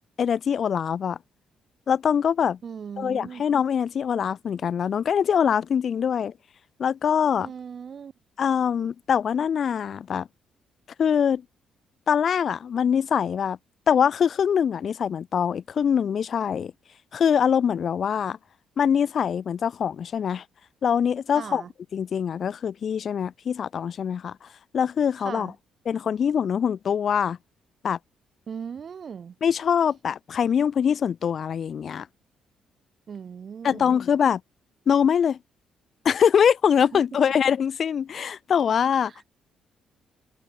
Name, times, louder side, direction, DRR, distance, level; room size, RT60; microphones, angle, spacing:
voice 1, 0.2-1.2 1.9-2.6 3.0-6.3 6.8-7.5 8.4-10.3 11.0-11.4 12.1-13.6 13.9-16.7 17.1-18.4 18.8-20.4 20.8-21.6 21.9-24.5 24.7-25.5 25.9-27.4 27.8-28.0 29.4-32.1 33.6-34.4 34.9-35.4 36.0-39.1, left 7 dB, 55° left, 0.5 m, -23 dB
voice 2, 2.6-3.4 7.4-8.1 21.3-21.7 25.2-25.5 28.5-29.3 33.1-33.9 36.9-37.0 39.1-39.2, right 7 dB, 50° right, 3.0 m, -38 dB
cardioid pair, 90°, 0 cm